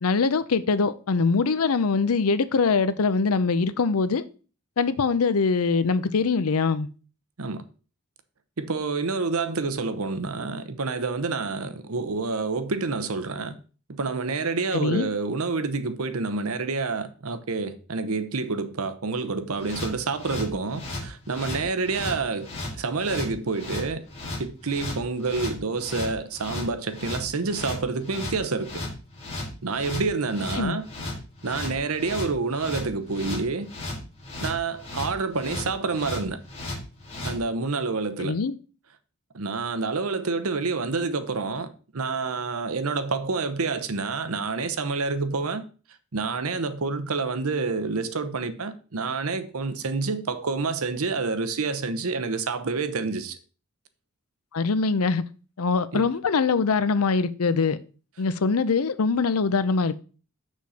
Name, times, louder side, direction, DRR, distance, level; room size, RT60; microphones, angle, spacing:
voice 1, 0.0-4.2 4.8-6.9 14.7-15.1 30.6-30.8 38.2-38.6 54.5-55.2 55.6-57.8 58.2-60.0, left 4 dB, 80° left, 0.6 m, -23 dB
voice 2, 8.6-13.5 13.9-22.5 22.8-24.0 24.4-28.7 29.6-30.8 31.4-33.7 34.4-36.4 37.2-38.3 39.3-45.6 46.1-53.4 55.9-56.1, right 4 dB, 75° right, 0.8 m, -28 dB
sound 1, 19.6-37.4, left 2 dB, 30° left, 2.9 m, -35 dB
6.4 x 6.3 x 4.2 m
head